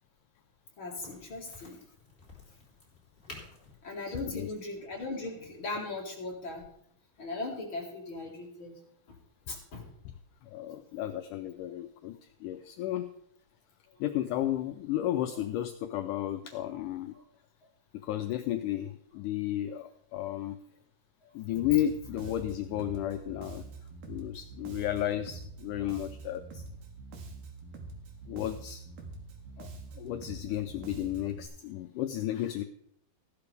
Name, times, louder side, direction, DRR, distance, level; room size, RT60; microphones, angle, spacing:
voice 1, 0.8-1.8 3.8-6.6 7.2-8.7 9.5-9.9, left 2 dB, 40° left, -1 dB, 2.2 m, -38 dB
Crack, 1.0-6.4, left 2 dB, 15° left, 3.2 m, -53 dB
voice 2, 4.1-4.5 10.4-13.1 14.0-17.1 18.0-20.6 21.3-23.7 24.1-26.6 28.3-28.8 29.6-32.6, left 12 dB, 80° left, 7 dB, 1.8 m, -33 dB
Bass guitar, 21.6-31.5, right 3 dB, 80° right, 3.3 m, -45 dB
15.5 x 11.5 x 3.4 m, 0.70 s
omnidirectional pair, 4.3 m